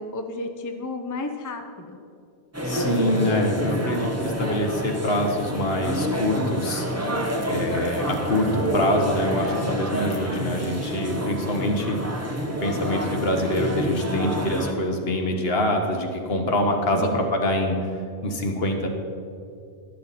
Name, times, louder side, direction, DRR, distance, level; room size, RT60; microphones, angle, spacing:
voice 1, 0.0-2.0 16.9-17.2, left 2 dB, 20° left, 5 dB, 0.6 m, -32 dB
sound 1, 2.5-14.7, equal, 15° right, 0.9 m, -27 dB
voice 2, 2.6-6.9 7.5-12.0 12.6-18.9, left 1 dB, 65° left, 3 dB, 1.5 m, -25 dB
12.0 x 11.5 x 4.2 m, 2.5 s
omnidirectional pair, 1.1 m